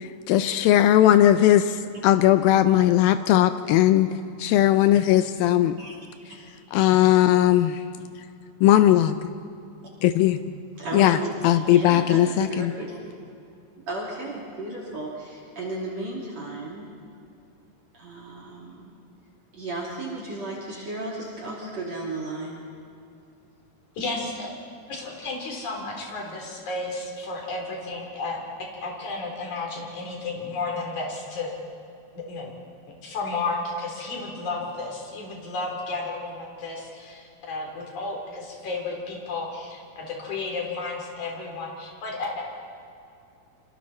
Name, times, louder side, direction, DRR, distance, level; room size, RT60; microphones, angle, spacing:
voice 1, 0.0-4.1 4.4-5.8 6.7-7.8 8.6-9.2 10.0-10.4 10.9-12.7, left 12 dB, 90° left, 10 dB, 2.0 m, -18 dB
voice 2, 10.8-13.0 13.9-16.8 17.9-18.9 19.5-22.6, right 2 dB, 45° right, -4 dB, 3.8 m, -34 dB
voice 3, 24.0-24.5 24.9-31.5 32.3-32.5 33.0-42.5, left 3 dB, 45° left, 0 dB, 4.8 m, -32 dB
28.5 x 26.0 x 4.3 m, 2.5 s
omnidirectional pair, 4.8 m